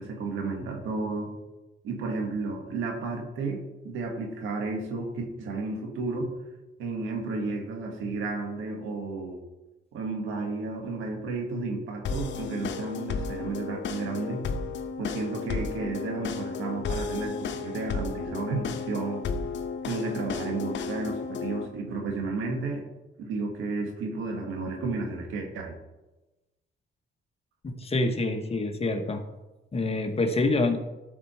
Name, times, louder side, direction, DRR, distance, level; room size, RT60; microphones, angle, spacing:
voice 1, 0.0-1.3 1.8-6.3 6.8-9.4 9.9-14.4 15.0-19.2 19.9-22.9 23.2-25.8, right 3 dB, 90° right, 3 dB, 1.7 m, -32 dB
sound 1, 12.0-21.6, left 5 dB, 70° left, 0.8 m, -33 dB
voice 2, 27.6-29.2 29.7-30.8, left 2 dB, 30° left, 5 dB, 1.2 m, -26 dB
12.5 x 4.5 x 4.4 m, 1.0 s
cardioid pair, 90°, 20 cm